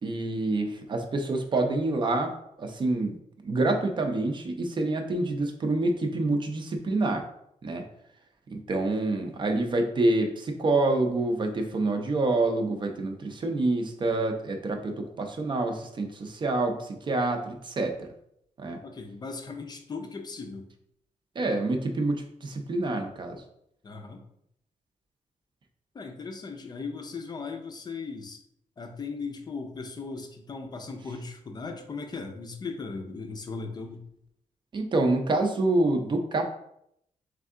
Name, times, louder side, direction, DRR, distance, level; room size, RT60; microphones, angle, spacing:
voice 1, 0.0-2.3 2.6-3.2 3.4-7.3 7.6-7.8 8.5-18.1 18.6-18.8 21.4-23.4 34.7-36.5, right 2 dB, 35° right, 4 dB, 0.5 m, -27 dB
voice 2, 18.8-20.7 23.8-24.2 25.9-28.4 28.8-34.0, left 4 dB, 30° left, 4 dB, 0.4 m, -38 dB
3.5 x 3.2 x 3.6 m, 0.74 s
wide cardioid pair, 145°, 13 cm